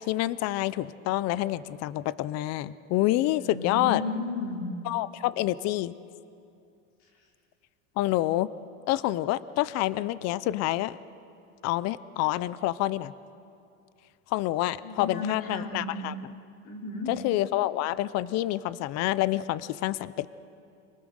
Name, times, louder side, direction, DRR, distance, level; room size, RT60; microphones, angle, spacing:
voice 1, 0.1-4.0 4.8-5.9 8.0-8.5 8.9-11.0 11.6-13.1 14.3-16.1 17.1-20.3, left 15 dB, 40° left, 17 dB, 0.6 m, -27 dB
voice 2, 3.2-4.6 14.8-16.0 16.6-17.1, left 2 dB, 65° left, -1 dB, 4.8 m, -34 dB
26.0 x 19.5 x 6.5 m, 2.6 s
supercardioid pair, 145°, 40 cm